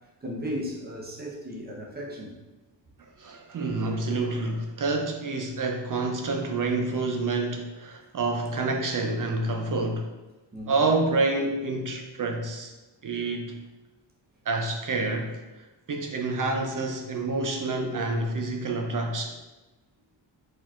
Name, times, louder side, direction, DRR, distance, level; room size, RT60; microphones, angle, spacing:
voice 1, 0.2-2.3 10.5-10.8, equal, 20° right, -2 dB, 0.7 m, -35 dB
voice 2, 3.2-10.1 10.7-12.7 13.0-13.6 14.5-15.4 15.9-19.4, right 3 dB, 45° right, 3 dB, 0.4 m, -28 dB
4.4 x 4.3 x 2.4 m, 1.1 s
wide cardioid pair, 145°, 47 cm